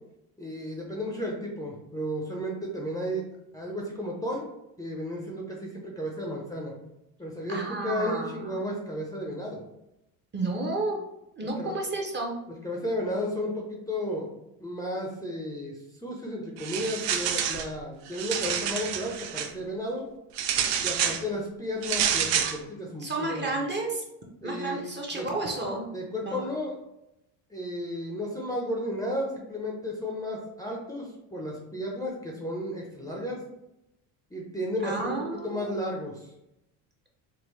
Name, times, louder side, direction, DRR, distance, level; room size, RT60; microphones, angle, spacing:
voice 1, 0.4-3.2 3.5-4.4 4.8-6.7 7.2-9.6 11.6-11.7 12.6-14.3 14.6-20.1 20.8-23.5 24.4-24.8 25.1-25.3 25.9-26.8 27.5-33.4 34.3-34.9 35.4-36.2, equal, 10° left, -2 dB, 0.6 m, -33 dB
voice 2, 7.5-8.7 10.3-11.0 11.4-12.3 23.0-24.0 24.4-25.9 26.3-26.5 34.8-35.7, right 2 dB, 25° right, 0 dB, 0.8 m, -31 dB
sound 1, 16.6-17.7 18.1-19.5 20.4-21.2 21.8-22.6, right 8 dB, 70° right, 0.6 m, -28 dB
3.7 x 2.2 x 3.2 m, 0.86 s
supercardioid pair, 90°, 45 cm